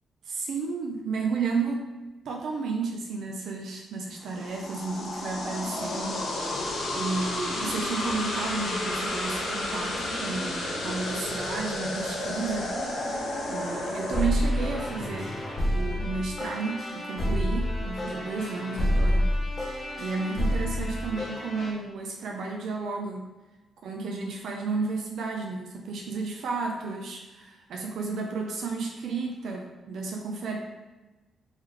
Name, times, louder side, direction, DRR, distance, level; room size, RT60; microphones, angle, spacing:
voice 1, 0.2-1.9 2.3-6.3 7.0-12.7 13.5-15.3 15.7-19.3 20.0-23.3 23.8-30.6, right 4 dB, 75° right, 0 dB, 0.5 m, -32 dB
sound 1, 4.2-14.2, left 1 dB, 85° left, 1.1 m, -31 dB
sound 2, 14.1-21.7, equal, 25° left, 1.2 m, -28 dB
3.6 x 3.1 x 3.2 m, 1.2 s
cardioid pair, 125°, 0 cm